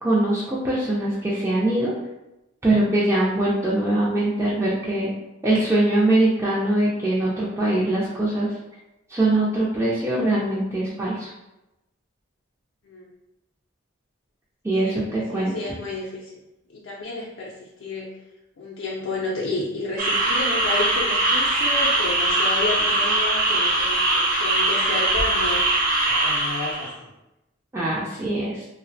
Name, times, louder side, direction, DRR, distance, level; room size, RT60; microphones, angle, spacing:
voice 1, 0.0-1.9 2.6-5.1 5.4-8.5 9.1-11.3 14.6-15.5 27.7-28.7, right 1 dB, 15° right, -7 dB, 0.3 m, -22 dB
voice 2, 15.3-16.3 16.7-18.2 18.6-25.6 26.1-27.1, left 2 dB, 65° left, -4 dB, 0.4 m, -31 dB
sound 1, 20.0-26.9, right 2 dB, 45° right, 0.7 m, -21 dB
2.7 x 2.0 x 2.6 m, 0.94 s
head